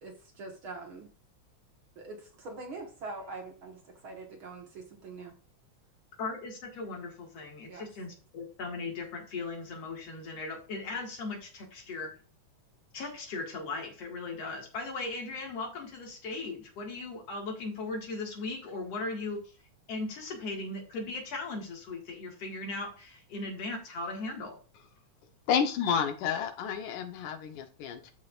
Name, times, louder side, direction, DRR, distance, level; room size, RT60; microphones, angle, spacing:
voice 1, 0.0-1.1 2.0-5.3 7.7-7.9, right 3 dB, 50° right, 1.8 m, -43 dB
voice 2, 6.2-12.1 12.9-19.5 19.9-24.6, left 3 dB, 55° left, 2.9 m, -38 dB
voice 3, 25.5-28.1, left 7 dB, 85° left, 2.6 m, -30 dB
13.0 x 5.6 x 2.5 m
omnidirectional pair, 3.4 m